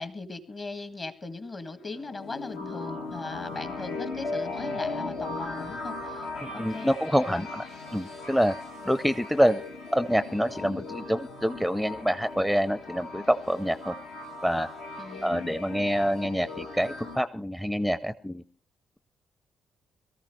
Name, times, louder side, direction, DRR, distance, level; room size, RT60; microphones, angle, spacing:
voice 1, 0.0-6.3 6.5-6.9 7.3-7.5 15.0-15.6, left 3 dB, 35° left, 11 dB, 1.8 m, -39 dB
sound 1, 1.8-17.2, left 3 dB, 65° left, 1.5 m, -38 dB
voice 2, 6.4-7.6 7.9-8.5 8.9-9.6 9.9-13.9 14.4-14.7 15.2-18.4, equal, ahead, 14 dB, 0.7 m, -26 dB
22.5 x 14.0 x 3.2 m, 0.39 s
figure-of-eight pair, 40°, 0 cm